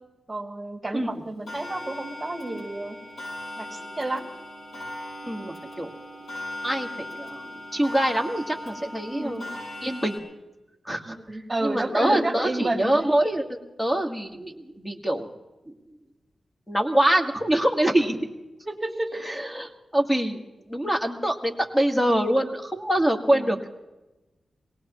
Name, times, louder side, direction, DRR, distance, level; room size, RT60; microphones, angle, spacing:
voice 1, 0.3-3.0 3.6-4.3 9.1-9.5 11.1-12.9 18.6-19.2 23.3-23.6, right 2 dB, 15° right, 1 dB, 2.3 m, -30 dB
Clock, 1.5-10.2, left 1 dB, 70° left, 7.2 m, -38 dB
voice 2, 5.2-5.9 6.6-9.5 9.8-10.2 10.8-11.2 11.6-15.3 16.7-18.3 19.2-20.4 20.7-23.8, right 1 dB, 5° left, 3 dB, 1.6 m, -25 dB
25.5 x 18.5 x 3.0 m, 1.1 s
wide cardioid pair, 115°, 0 cm